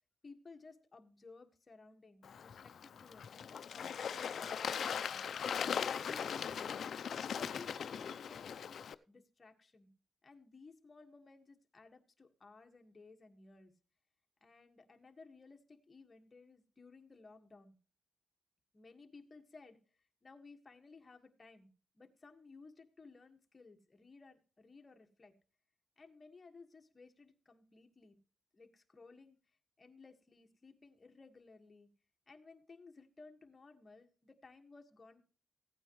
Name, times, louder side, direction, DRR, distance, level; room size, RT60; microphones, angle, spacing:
voice 1, 0.2-5.3 5.7-6.9 7.3-8.8 9.1-9.9 10.2-13.7 14.4-17.8 18.7-21.7 21.9-25.4 26.0-28.2 28.5-31.9 32.3-35.2, left 3 dB, 35° left, 5 dB, 1.7 m, -58 dB
Bird / Water, 2.2-8.9, left 7 dB, 70° left, 0.5 m, -39 dB
16.0 x 9.0 x 3.1 m, 0.37 s
cardioid pair, 70°, 0 cm